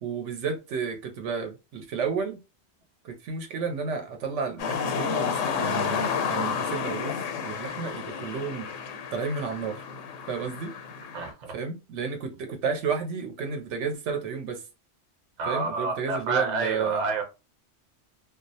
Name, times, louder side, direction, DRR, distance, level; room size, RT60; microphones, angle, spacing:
voice 1, 0.0-2.4 3.0-8.7 9.1-9.8 10.3-10.7 11.5-14.6 15.5-17.0, right 5 dB, 80° right, 0.9 m, -32 dB
sound 1, 4.6-11.3, left 6 dB, 85° left, 0.9 m, -31 dB
voice 2, 11.1-11.5 15.4-17.2, right 4 dB, 45° right, 0.7 m, -29 dB
2.3 x 2.0 x 2.6 m
omnidirectional pair, 1.2 m